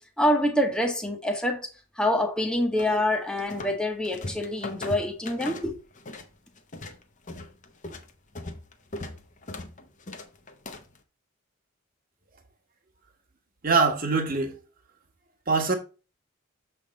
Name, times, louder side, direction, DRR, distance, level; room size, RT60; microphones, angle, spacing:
voice 1, 0.2-1.7 2.0-5.7, left 1 dB, 5° left, 1.0 m, -26 dB
sound 1, 2.8-3.8 4.0-6.3 6.6-11.0, left 2 dB, 35° left, 0.8 m, -39 dB
voice 2, 13.6-14.6 15.5-15.7, right 4 dB, 40° right, 1.3 m, -23 dB
7.0 x 3.5 x 5.2 m
head